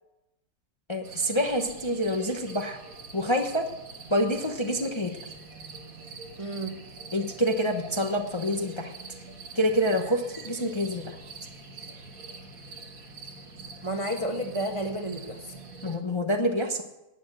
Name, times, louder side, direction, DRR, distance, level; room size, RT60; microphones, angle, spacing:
voice 1, 0.9-2.8 3.1-3.7 4.1-5.1 7.1-8.9 9.5-11.1 15.8-16.8, equal, 20° left, 3 dB, 0.8 m, -27 dB
sound 1, 1.0-16.0, right 4 dB, 60° right, 2.0 m, -44 dB
voice 2, 6.4-6.7 13.8-15.5, right 1 dB, 25° right, 3 dB, 0.9 m, -31 dB
11.5 x 8.7 x 7.7 m, 0.95 s
omnidirectional pair, 1.7 m